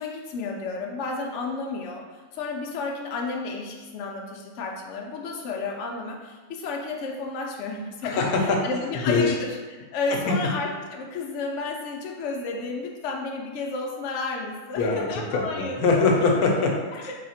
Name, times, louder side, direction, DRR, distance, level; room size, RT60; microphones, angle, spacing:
voice 1, 0.0-8.3 8.6-16.2 16.9-17.1, left 3 dB, 65° left, 0 dB, 0.8 m, -32 dB
voice 2, 8.0-8.6 9.1-9.3 10.1-10.3 14.8-17.1, left 3 dB, 80° left, 1 dB, 1.1 m, -23 dB
3.4 x 2.8 x 4.2 m, 1.3 s
omnidirectional pair, 1.5 m